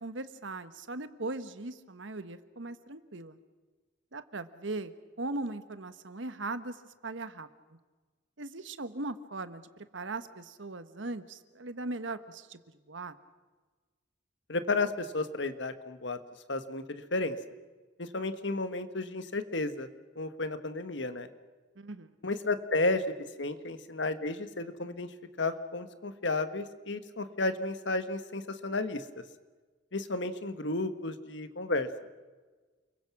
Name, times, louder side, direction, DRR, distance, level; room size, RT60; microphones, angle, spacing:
voice 1, 0.0-3.4 4.1-4.9 5.2-6.8 7.0-7.5 8.4-12.6 12.9-13.1 21.8-22.1, right 2 dB, 75° right, 11 dB, 1.3 m, -39 dB
voice 2, 14.5-16.2 16.5-17.4 18.0-19.9 20.1-21.3 22.2-23.0 23.4-25.1 25.4-29.0 29.9-31.9, left 2 dB, 70° left, 10 dB, 1.4 m, -32 dB
29.5 x 22.5 x 6.1 m, 1.3 s
head